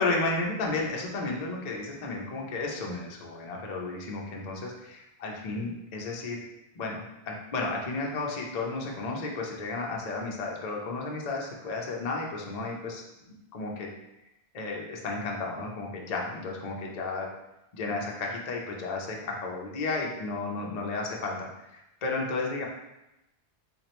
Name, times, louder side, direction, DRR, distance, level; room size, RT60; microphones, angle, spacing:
voice 1, 0.0-6.4 6.8-14.0 14.5-17.3 17.7-22.7, left 3 dB, 45° left, -1 dB, 0.6 m, -33 dB
3.6 x 3.1 x 2.9 m, 0.91 s
omnidirectional pair, 1.2 m